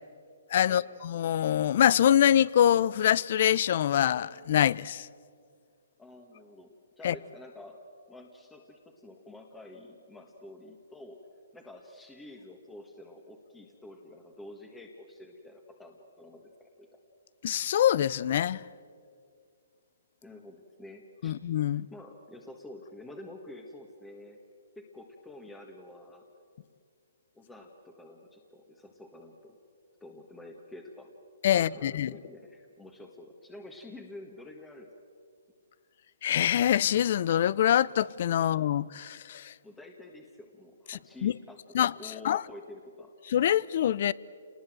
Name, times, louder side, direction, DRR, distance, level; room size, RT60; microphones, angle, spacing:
voice 1, 0.5-5.1 7.0-7.1 17.4-18.6 21.2-21.9 31.4-32.1 36.2-39.5 40.9-41.3 41.7-41.9 42.2-42.4 43.3-44.1, left 10 dB, 50° left, 0.5 m, -25 dB
voice 2, 6.0-7.8 8.1-11.2 11.5-17.0 20.2-21.3 21.9-24.4 24.7-26.2 27.3-29.6 30.0-31.1 31.5-34.9 38.4-38.6 39.6-43.1, left 1 dB, 5° left, 1.5 m, -48 dB
28.0 x 20.0 x 7.6 m
hypercardioid pair, 145°, 0 cm